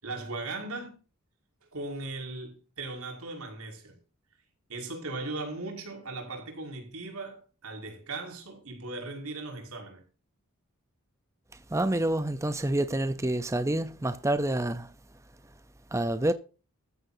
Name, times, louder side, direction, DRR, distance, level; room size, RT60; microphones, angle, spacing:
voice 1, 0.0-0.9 1.7-4.0 4.7-10.0, right 2 dB, 85° right, 5.6 m, -38 dB
voice 2, 11.7-14.9 15.9-16.3, right 1 dB, 15° right, 0.6 m, -28 dB
14.5 x 14.0 x 2.7 m
head